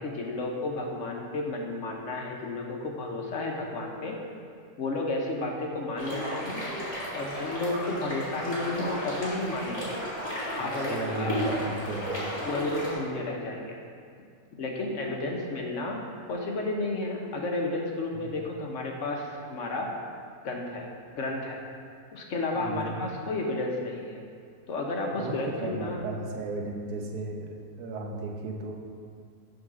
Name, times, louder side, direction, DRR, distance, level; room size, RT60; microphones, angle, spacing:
voice 1, 0.0-4.2 4.8-6.6 7.1-10.0 10.6-11.4 12.4-13.8 14.6-19.9 20.4-20.9 21.1-21.6 22.1-24.2 24.7-26.0, left 2 dB, 60° left, 0 dB, 1.1 m, -32 dB
sound 1, 6.0-12.9, equal, 15° left, 1.9 m, -33 dB
voice 2, 10.6-12.4 18.1-18.4 22.5-23.0 25.1-28.8, right 2 dB, 85° right, 2 dB, 1.3 m, -35 dB
6.5 x 3.8 x 6.0 m, 2.3 s
omnidirectional pair, 1.6 m